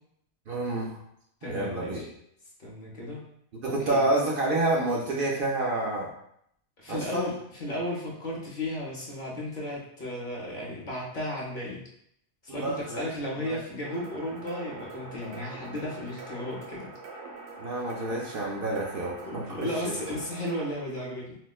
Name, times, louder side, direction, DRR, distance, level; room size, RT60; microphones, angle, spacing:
voice 1, 0.5-1.0 1.5-2.1 3.6-6.1 6.9-7.3 12.5-13.0 13.4-13.6 17.6-19.9, right 2 dB, 60° right, -2 dB, 0.7 m, -28 dB
voice 2, 1.4-2.1 2.6-3.2 3.6-4.0 6.8-7.3 7.6-11.8 12.4-16.9 19.2-21.4, left 1 dB, 50° left, -4 dB, 0.8 m, -34 dB
sound 1, 13.8-20.7, right 3 dB, 85° right, 1.0 m, -43 dB
4.2 x 2.1 x 2.3 m, 0.72 s
omnidirectional pair, 1.2 m